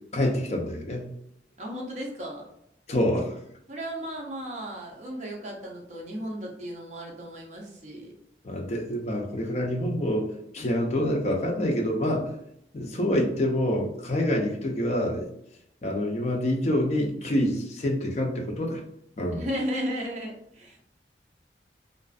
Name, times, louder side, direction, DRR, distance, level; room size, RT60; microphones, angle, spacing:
voice 1, 0.1-1.1 2.9-3.4 8.4-12.3 12.7-15.3 15.8-18.8 19.2-19.5, left 1 dB, 40° left, 1 dB, 0.5 m, -27 dB
voice 2, 1.6-2.4 3.7-8.1 19.3-20.8, equal, 40° right, -1 dB, 0.6 m, -35 dB
2.4 x 2.4 x 2.3 m, 0.74 s
head